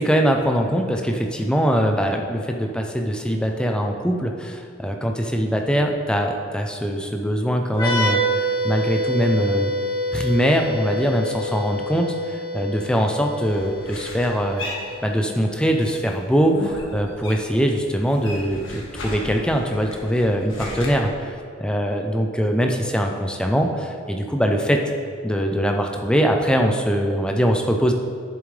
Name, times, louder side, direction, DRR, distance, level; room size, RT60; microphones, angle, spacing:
voice 1, 0.0-8.2 8.6-9.7 10.1-14.6 15.0-24.8 25.2-27.9, equal, 5° left, 3 dB, 0.6 m, -22 dB
sound 1, 7.7-15.2, equal, 25° left, 1.9 m, -27 dB
sound 2, 13.4-15.5 15.8-17.6 17.9-20.9, left 2 dB, 75° left, 1.6 m, -36 dB
10.5 x 7.3 x 3.3 m, 2.2 s
head